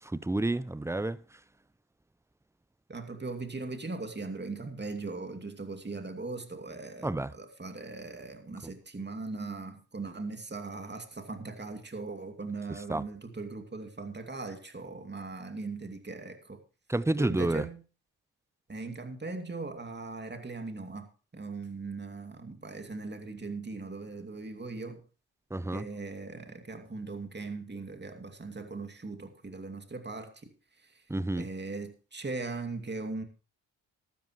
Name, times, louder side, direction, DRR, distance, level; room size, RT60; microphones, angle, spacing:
voice 1, 0.1-1.2 7.0-7.3 12.9-13.0 16.9-17.6 25.5-25.8 31.1-31.5, right 2 dB, 5° right, 0.7 m, -29 dB
voice 2, 2.9-16.6 17.2-17.8 18.7-21.1 21.3-25.0 25.7-31.1 31.4-33.2, right 3 dB, 20° right, 2.5 m, -39 dB
15.5 x 12.5 x 3.1 m
hypercardioid pair, 45°, 45 cm